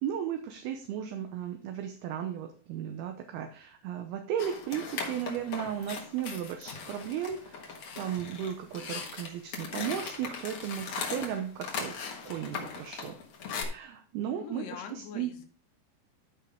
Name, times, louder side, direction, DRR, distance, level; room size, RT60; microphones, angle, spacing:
voice 1, 0.0-13.2 13.6-15.3, right 9 dB, 75° right, 5 dB, 2.4 m, -35 dB
sound 1, 4.4-13.6, left 5 dB, 60° left, 1.9 m, -39 dB
voice 2, 14.3-15.5, left 9 dB, 75° left, 5 dB, 3.2 m, -43 dB
13.0 x 5.4 x 3.5 m, 0.41 s
omnidirectional pair, 5.1 m